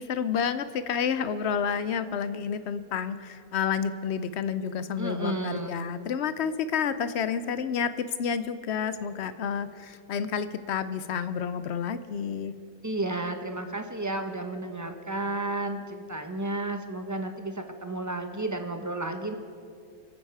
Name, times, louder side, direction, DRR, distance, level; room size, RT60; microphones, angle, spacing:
voice 1, 0.0-12.5, left 7 dB, 65° left, 13 dB, 0.7 m, -30 dB
voice 2, 5.0-5.8 12.8-19.4, right 2 dB, 20° right, 5 dB, 0.6 m, -32 dB
23.5 x 8.8 x 4.8 m, 2.3 s
omnidirectional pair, 1.6 m